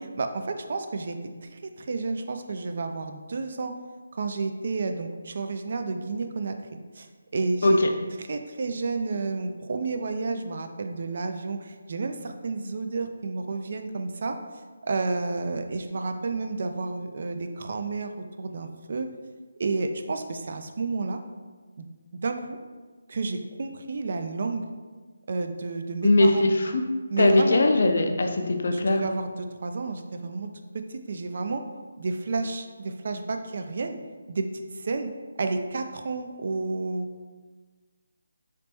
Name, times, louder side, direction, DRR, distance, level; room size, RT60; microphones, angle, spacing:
voice 1, 0.0-1.2 1.4-3.7 4.1-6.6 7.0-7.1 7.3-7.8 8.2-14.4 14.8-19.1 19.6-21.2 21.8-21.9 22.2-22.6 23.1-24.6 25.3-26.4 27.1-27.6 28.7-31.6 32.0-34.0 34.3-35.1 35.4-37.1, right 3 dB, 55° right, 6 dB, 0.3 m, -31 dB
voice 2, 26.0-26.8 27.2-29.0, left 2 dB, 60° left, 4 dB, 0.4 m, -20 dB
3.3 x 2.9 x 3.0 m, 1.4 s
figure-of-eight pair, 165°, 0 cm